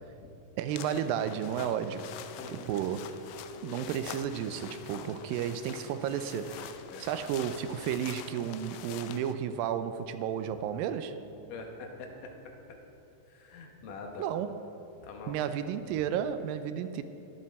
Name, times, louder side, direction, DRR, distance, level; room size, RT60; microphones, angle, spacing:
sound 1, 0.5-12.6, left 4 dB, 65° right, 3.4 m, -51 dB
voice 1, 0.6-2.1 2.5-3.1 3.6-6.7 7.0-11.2 14.2-14.8 15.3-17.0, right 9 dB, 85° right, 11 dB, 2.3 m, -33 dB
sound 2, 0.7-9.3, left 10 dB, 90° left, 2.4 m, -46 dB
voice 2, 2.4-2.8 6.9-7.1 11.5-12.8 13.3-14.5 15.0-15.5, left 3 dB, 70° left, 3 dB, 2.5 m, -45 dB
22.0 x 7.5 x 4.3 m, 2.9 s
omnidirectional pair, 4.1 m